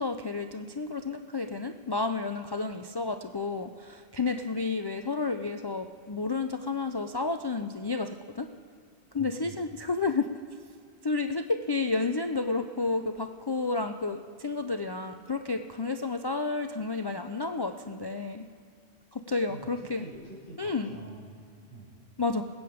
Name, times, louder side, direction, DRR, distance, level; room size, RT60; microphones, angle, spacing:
voice 1, 0.0-8.5 9.1-10.3 11.0-18.5 19.1-20.1 20.6-21.0 22.2-22.4, left 3 dB, 40° left, 6 dB, 0.3 m, -31 dB
voice 2, 9.2-9.6 19.5-22.0, right 2 dB, 80° right, -7 dB, 4.5 m, -47 dB
20.0 x 8.7 x 5.0 m, 2.3 s
omnidirectional pair, 1.1 m